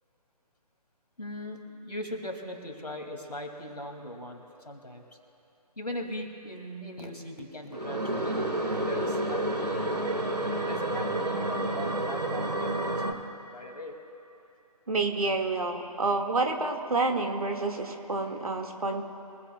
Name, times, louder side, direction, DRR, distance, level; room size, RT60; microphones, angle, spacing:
voice 1, 1.2-5.0 5.8-10.0 10.6-13.2 13.5-14.0, left 1 dB, 85° left, 3 dB, 2.5 m, -40 dB
sound 1, 7.7-13.1, right 1 dB, 80° right, 1.6 m, -29 dB
voice 2, 14.9-19.0, right 3 dB, 65° right, 3 dB, 1.9 m, -28 dB
23.5 x 15.0 x 2.3 m, 3.0 s
figure-of-eight pair, 145°, 20 cm